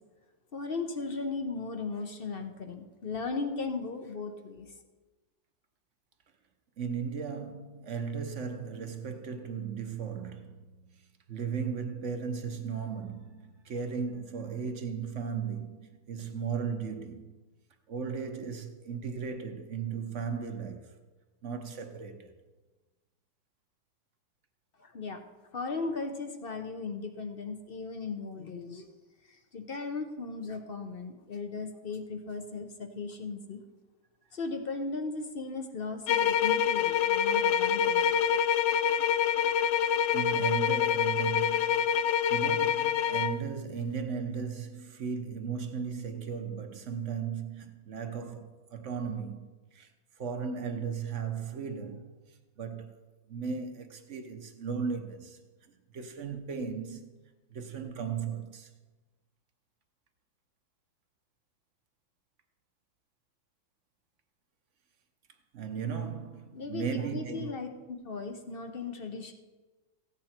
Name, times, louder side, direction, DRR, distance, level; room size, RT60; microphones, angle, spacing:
voice 1, 0.5-4.7 24.8-25.2 25.5-28.9 29.3-33.6 34.3-38.4 66.5-69.3, left 4 dB, 50° left, 0.7 m, -37 dB
voice 2, 6.8-17.3 17.9-20.9 21.4-22.3 40.1-42.0 42.3-49.9 50.2-52.1 52.6-53.0 53.3-57.2 57.5-58.7 65.5-67.5, right 6 dB, 50° right, 1.0 m, -36 dB
sound 1, 36.1-43.4, left 8 dB, 75° left, 1.2 m, -26 dB
15.5 x 8.8 x 4.4 m
omnidirectional pair, 2.1 m